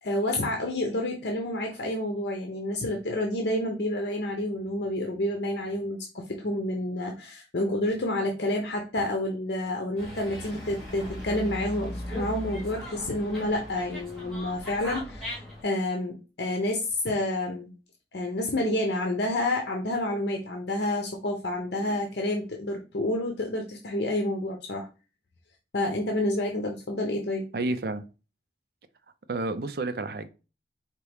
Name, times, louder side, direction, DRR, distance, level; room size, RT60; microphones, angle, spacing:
voice 1, 0.0-17.7 18.1-24.9 25.7-27.4, left 1 dB, 75° left, 0.7 m, -29 dB
Dog, 10.0-15.6, left 1 dB, ahead, 2.1 m, -38 dB
voice 2, 27.5-28.0 29.3-30.3, right 2 dB, 60° right, 0.5 m, -30 dB
4.5 x 2.9 x 3.4 m
head